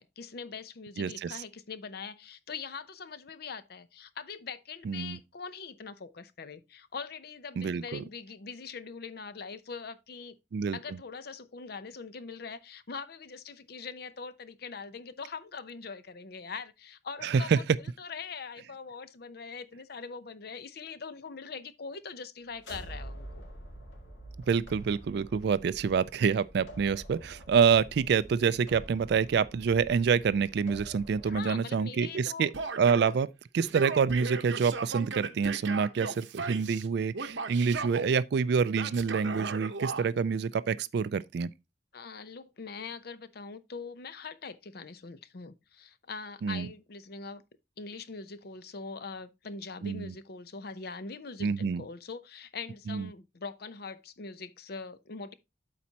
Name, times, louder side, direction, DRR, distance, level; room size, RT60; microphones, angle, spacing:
voice 1, 0.0-10.4 10.7-23.5 31.2-32.5 41.9-47.4 47.8-55.3, left 5 dB, 55° left, 0.7 m, -42 dB
voice 2, 1.0-1.4 4.8-5.2 7.6-8.0 10.5-11.0 17.2-17.6 24.5-32.5 32.8-33.3 33.5-41.5 46.4-46.7 49.8-50.1 51.4-51.8 52.9-53.1, right 6 dB, 60° right, 0.3 m, -27 dB
sound 1, 22.5-31.4, right 1 dB, 90° left, 2.1 m, -47 dB
Male speech man speaking / Yell, 32.5-33.2 33.6-36.9 37.1-38.1 38.7-40.1, right 4 dB, 80° right, 1.0 m, -36 dB
12.5 x 4.3 x 2.8 m
head